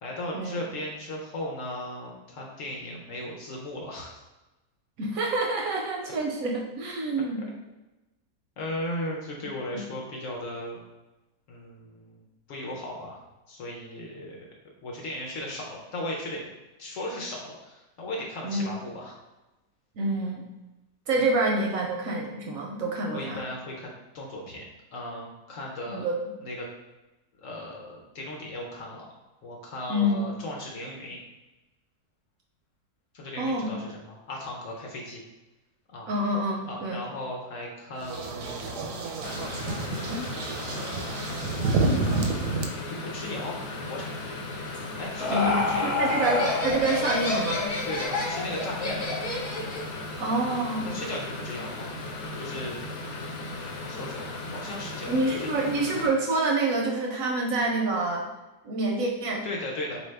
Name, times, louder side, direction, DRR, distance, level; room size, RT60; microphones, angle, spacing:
voice 1, 0.0-4.2 8.6-10.8 11.5-13.2 13.5-14.4 14.8-16.5 16.8-19.2 21.2-21.3 23.1-24.6 24.9-26.0 26.4-26.7 27.4-29.1 29.4-31.2 33.1-35.2 35.9-36.1 36.6-39.3 40.7-41.2 41.9-42.3 42.8-43.6 43.9-44.4 45.0-46.1 47.8-49.1 50.4-50.5 50.8-51.9 52.4-52.8 53.8-55.5 59.4-60.0, left 1 dB, 60° left, -2 dB, 0.9 m, -37 dB
voice 2, 5.0-7.5 18.4-18.7 20.0-20.5 21.1-23.4 25.9-26.2 29.9-30.3 33.4-33.7 36.1-37.1 45.3-47.7 50.2-51.0 55.1-58.3 58.6-59.4, right 2 dB, 70° right, 0 dB, 0.9 m, -27 dB
sound 1, 38.0-42.7, right 3 dB, 85° right, 1.2 m, -29 dB
sound 2, 39.2-56.1, left 2 dB, 85° left, 1.2 m, -37 dB
Laughter, 44.7-49.9, left 3 dB, 35° left, 0.8 m, -28 dB
4.2 x 2.7 x 3.3 m, 1.1 s
omnidirectional pair, 1.7 m